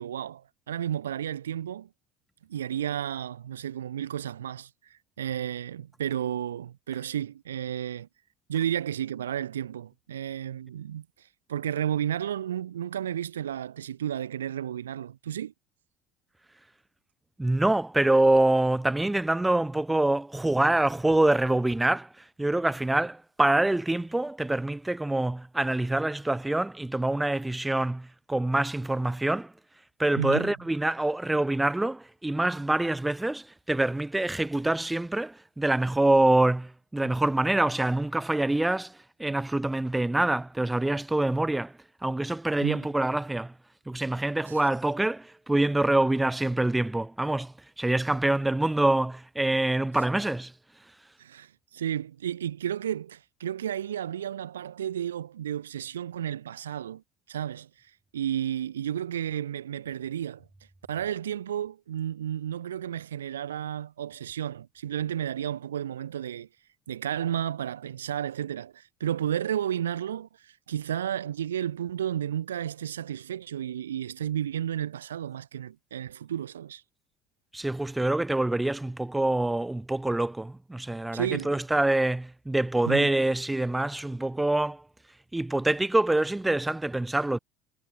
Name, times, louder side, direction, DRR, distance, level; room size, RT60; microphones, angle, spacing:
voice 1, 0.0-1.9 2.5-4.7 5.2-8.1 8.5-11.0 11.5-15.5 30.2-30.5 42.6-42.9 44.5-44.6 51.2-57.0 57.3-57.7 58.1-60.5 60.9-66.5 66.9-76.8 81.1-81.5 82.8-83.1, right 10 dB, 75° right, 1.1 m, -32 dB
voice 2, 17.4-29.5 30.0-43.5 43.9-50.5 77.5-84.8 85.3-87.4, right 2 dB, 10° right, 0.7 m, -25 dB
figure-of-eight pair, 60°, 0 cm